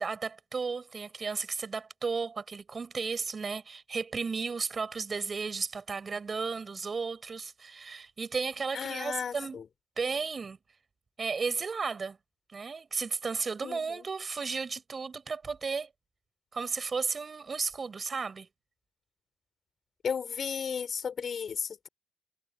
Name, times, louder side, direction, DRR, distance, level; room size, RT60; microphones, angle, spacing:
voice 1, 0.0-9.6 10.0-10.6 11.2-12.2 12.5-15.9 16.5-18.5, right 5 dB, 35° right, 5.6 m, -34 dB
voice 2, 8.7-9.6 13.6-14.0 20.0-21.9, left 7 dB, 50° left, 5.8 m, -34 dB
cardioid pair, 90°, 0 cm